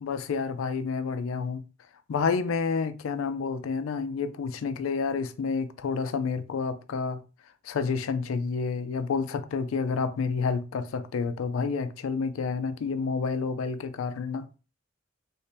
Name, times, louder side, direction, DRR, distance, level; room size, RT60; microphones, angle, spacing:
voice 1, 0.0-1.6 2.1-7.2 7.6-14.6, left 5 dB, 85° left, 0.4 m, -29 dB
3.1 x 2.1 x 3.9 m
head